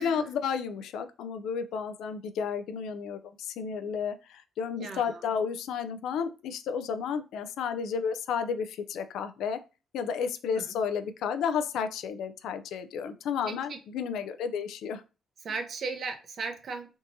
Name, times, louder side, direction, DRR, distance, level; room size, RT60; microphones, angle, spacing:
voice 1, 0.0-9.6 9.9-15.0, left 6 dB, 80° left, 9 dB, 0.3 m, -32 dB
voice 2, 4.8-5.3 10.5-10.6 13.5-13.8 15.4-16.9, right 4 dB, 55° right, 6 dB, 0.6 m, -36 dB
3.5 x 2.7 x 2.6 m, 0.31 s
cardioid pair, 90°, 0 cm